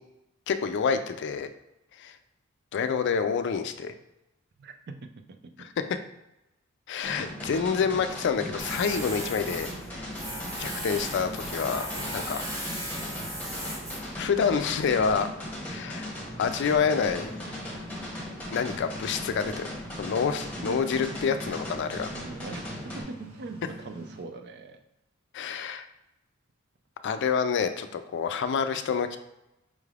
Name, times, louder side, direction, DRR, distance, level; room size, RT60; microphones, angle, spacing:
voice 1, 0.5-1.5 2.0-2.1 2.7-3.9 6.9-9.7 9.9-10.1 10.6-12.6 14.2-15.3 15.6-16.1 16.3-17.4 18.5-19.7 20.0-22.1 25.3-25.8 27.0-29.2, left 6 dB, 60° left, 9 dB, 0.3 m, -28 dB
voice 2, 4.6-5.7 20.5-21.2 22.1-24.8, right 3 dB, 55° right, 6 dB, 0.4 m, -42 dB
sound 1, 7.0-23.0, left 1 dB, 5° left, 0.9 m, -38 dB
Tools, 8.6-15.1, equal, 20° right, 1.2 m, -38 dB
sound 2, 16.8-24.2, equal, 80° right, 1.2 m, -47 dB
5.1 x 3.3 x 2.4 m, 0.91 s
head